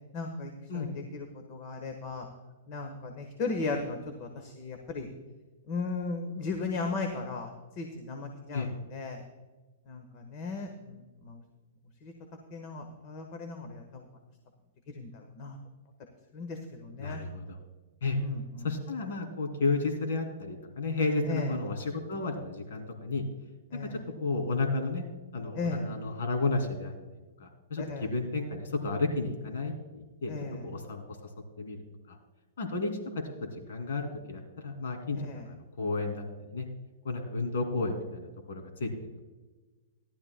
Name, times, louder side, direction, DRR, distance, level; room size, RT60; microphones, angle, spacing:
voice 1, 0.1-2.3 2.7-5.1 5.7-9.2 9.9-11.4 12.0-12.1 12.5-14.1 14.9-15.6 16.3-17.3 18.1-18.7 21.2-21.5 23.7-24.0 25.5-25.9 27.8-28.1 30.3-30.7 35.1-35.5, left 3 dB, 35° left, 4 dB, 1.2 m, -36 dB
voice 2, 17.0-17.6 18.0-18.2 18.6-23.2 23.8-25.0 25.3-26.9 27.4-30.3 30.6-31.0 31.6-32.2 32.6-32.9 33.5-35.2 35.5-36.7 37.0-39.2, left 3 dB, 75° left, 4 dB, 2.5 m, -32 dB
18.0 x 12.0 x 2.2 m, 1.2 s
hypercardioid pair, 160°, 0 cm